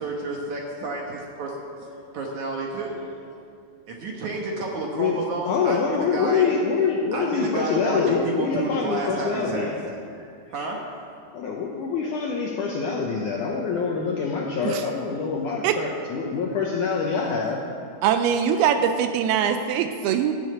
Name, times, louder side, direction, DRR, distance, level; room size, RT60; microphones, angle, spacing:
voice 1, 0.0-1.7 2.1-3.0 3.9-6.5 7.1-9.7 10.5-10.8 16.4-16.5, right 2 dB, 65° right, -1 dB, 2.0 m, -30 dB
voice 2, 5.5-9.8 10.1-10.2 11.3-17.6, left 5 dB, 75° left, -1 dB, 1.8 m, -25 dB
voice 3, 18.0-20.4, right 8 dB, 80° right, 8 dB, 2.4 m, -22 dB
13.5 x 7.0 x 9.1 m, 2.5 s
omnidirectional pair, 4.8 m